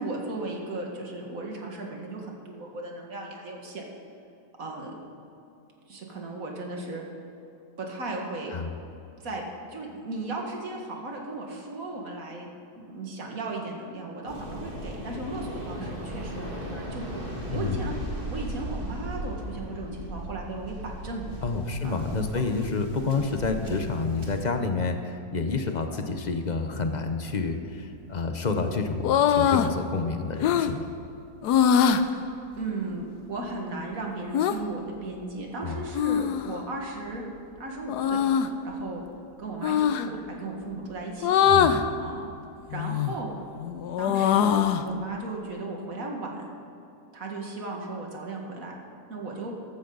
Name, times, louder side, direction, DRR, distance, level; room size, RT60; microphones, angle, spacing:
voice 1, 0.0-3.8 4.6-4.9 5.9-7.0 7.8-8.5 9.2-12.5 12.7-20.8 21.0-21.4 21.8-22.0 22.3-22.4 23.6-23.7 31.9-37.3 37.6-38.2 38.6-39.0 39.4-41.4 42.0-42.3 42.7-43.3 44.0-46.5 47.1-48.7 49.1-49.5, right 2 dB, 60° right, 0 dB, 2.3 m, -36 dB
Waves surf, 14.3-24.5, right 1 dB, 35° right, 2.0 m, -37 dB
voice 2, 21.4-30.9 35.6-35.8 41.5-41.9, left 4 dB, 35° left, 6 dB, 0.7 m, -29 dB
sound 1, 29.0-29.7 30.4-30.7 31.4-32.0 34.3-34.6 35.9-36.6 37.9-38.5 39.6-40.1 41.2-41.8 42.7-43.2 43.6-44.9, left 8 dB, 90° left, 1.2 m, -22 dB
14.5 x 12.5 x 4.0 m, 2.8 s
omnidirectional pair, 1.7 m